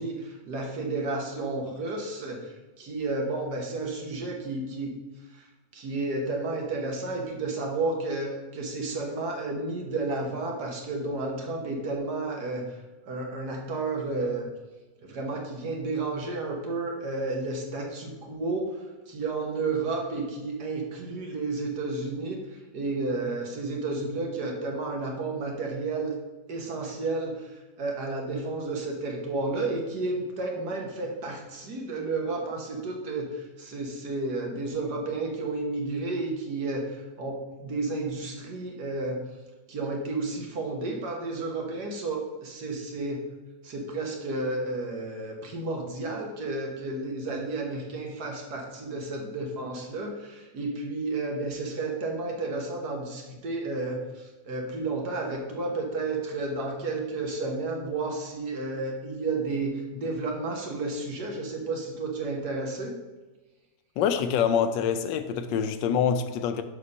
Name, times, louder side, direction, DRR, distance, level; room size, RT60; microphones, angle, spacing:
voice 1, 0.0-4.9 5.3-5.5 5.7-12.8 13.1-14.5 15.0-26.1 26.5-39.2 39.7-43.3 43.6-63.0, right 3 dB, 60° right, 1.8 m, -32 dB
voice 2, 64.0-66.6, left 7 dB, 80° left, 1.3 m, -25 dB
6.6 x 5.2 x 5.4 m
omnidirectional pair, 2.0 m